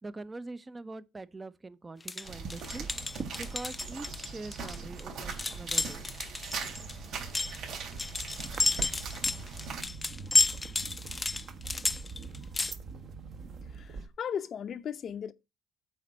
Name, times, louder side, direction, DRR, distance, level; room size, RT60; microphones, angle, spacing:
voice 1, 0.0-2.9 3.4-6.4, right 2 dB, 20° right, 0.7 m, -44 dB
sound 1, 2.0-12.7, left 3 dB, 20° left, 0.4 m, -31 dB
sound 2, 2.2-9.8, right 5 dB, 70° right, 3.7 m, -41 dB
sound 3, 2.3-14.1, right 4 dB, 50° right, 1.3 m, -44 dB
voice 2, 13.6-15.3, left 8 dB, 45° left, 0.7 m, -37 dB
8.5 x 4.2 x 6.2 m
cardioid pair, 115°, 0 cm